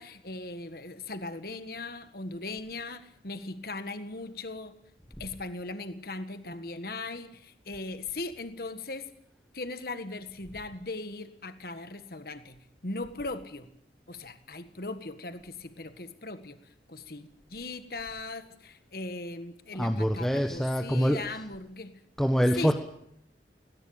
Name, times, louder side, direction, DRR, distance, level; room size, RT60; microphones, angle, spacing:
voice 1, 0.0-4.8 5.2-9.1 9.5-12.6 12.8-13.7 14.1-16.6 16.9-21.9 22.6-22.7, left 2 dB, 55° left, 10 dB, 1.6 m, -39 dB
voice 2, 19.7-21.2 22.2-22.7, equal, ahead, 5 dB, 1.2 m, -25 dB
18.5 x 18.5 x 9.0 m, 0.74 s
head